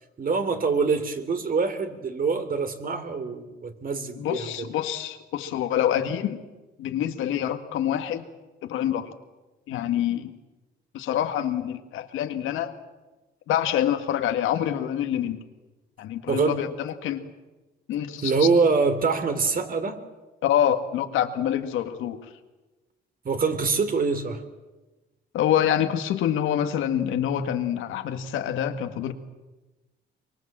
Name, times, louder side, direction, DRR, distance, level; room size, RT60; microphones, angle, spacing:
voice 1, 0.2-4.4 16.3-16.6 18.2-20.0 23.2-24.4, right 4 dB, 45° right, 9 dB, 3.1 m, -24 dB
voice 2, 4.2-6.4 6.8-8.3 8.6-9.1 9.7-10.3 10.9-12.7 13.5-15.4 16.0-17.2 17.9-18.5 20.4-22.3 25.3-29.1, left 10 dB, 90° left, 7 dB, 1.9 m, -26 dB
24.0 x 23.5 x 7.5 m, 1.1 s
cardioid pair, 90°, 20 cm